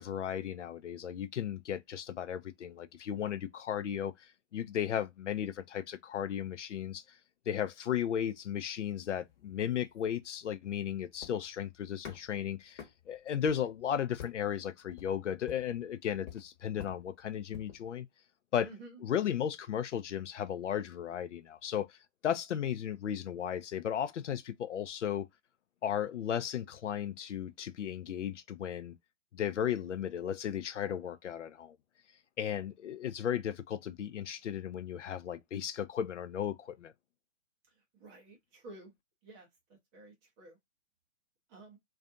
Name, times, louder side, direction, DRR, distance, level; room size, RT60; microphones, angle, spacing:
voice 1, 0.0-7.0 7.5-18.1 18.5-18.7 19.0-22.0 22.2-25.3 25.8-29.0 29.3-31.8 32.4-36.9, left 9 dB, 70° left, 0.5 m, -35 dB
sound 1, 9.1-17.9, left 8 dB, 35° left, 1.0 m, -52 dB
voice 2, 18.6-19.0 37.9-38.9 39.2-40.6 41.5-41.8, right 2 dB, 10° right, 0.5 m, -52 dB
2.5 x 2.4 x 2.4 m
figure-of-eight pair, 130°, 37 cm